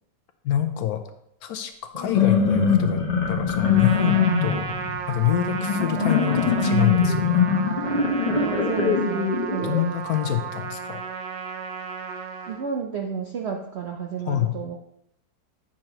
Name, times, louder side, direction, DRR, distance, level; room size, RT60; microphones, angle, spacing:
voice 1, 0.4-1.0 1.4-4.7 5.0-7.4 9.6-11.0 14.2-14.6, left 11 dB, 70° left, 7 dB, 1.1 m, -26 dB
sound 1, 1.9-9.8, left 5 dB, 30° left, 0.8 m, -22 dB
Trumpet, 3.6-12.6, right 6 dB, 85° right, 1.3 m, -33 dB
voice 2, 8.2-9.9 12.5-14.8, right 7 dB, 70° right, 2 dB, 0.6 m, -32 dB
8.6 x 6.0 x 2.9 m, 0.75 s
omnidirectional pair, 1.8 m